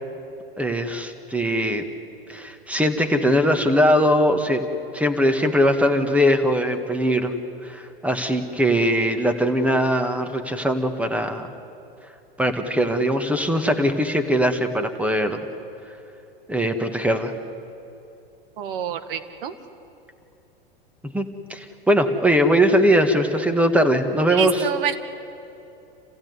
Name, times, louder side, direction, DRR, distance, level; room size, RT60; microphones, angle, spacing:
voice 1, 0.6-1.8 2.3-4.6 4.9-7.3 7.6-11.5 12.4-15.4 16.5-17.3 21.0-24.7, equal, 5° right, 7 dB, 1.9 m, -21 dB
voice 2, 18.6-19.5 24.3-25.0, right 9 dB, 65° right, 10 dB, 1.9 m, -27 dB
28.5 x 16.0 x 9.7 m, 2.8 s
hypercardioid pair, 105°, 29 cm